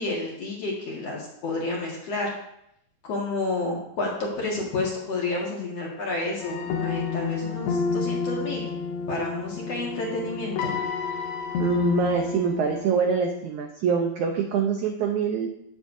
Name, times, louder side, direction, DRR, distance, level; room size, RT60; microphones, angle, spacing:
voice 1, 0.0-2.3 3.0-8.7 9.1-10.7, left 2 dB, 50° left, -3 dB, 2.4 m, -30 dB
sound 1, 6.4-13.0, left 5 dB, 85° left, 3.0 m, -30 dB
voice 2, 11.6-15.5, right 5 dB, 75° right, 3 dB, 1.7 m, -25 dB
12.0 x 9.9 x 2.7 m, 0.76 s
omnidirectional pair, 4.5 m